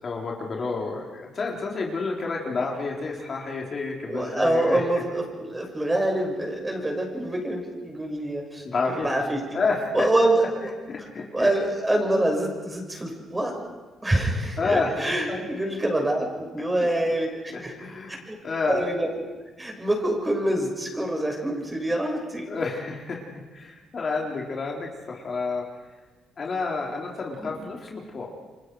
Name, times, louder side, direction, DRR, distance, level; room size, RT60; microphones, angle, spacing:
voice 1, 0.0-4.8 8.6-9.1 9.5-10.1 10.9-11.5 14.6-15.4 17.8-18.9 22.5-25.6 26.4-28.3, left 4 dB, 45° left, -1 dB, 4.1 m, -29 dB
voice 2, 4.1-8.6 9.0-9.6 9.9-10.7 11.3-13.5 14.0-17.7 18.3-18.4 18.6-19.1 19.6-22.5 27.4-27.6, right 1 dB, 15° right, 1 dB, 6.2 m, -25 dB
29.5 x 24.5 x 5.0 m, 1.3 s
cardioid pair, 90°, 0 cm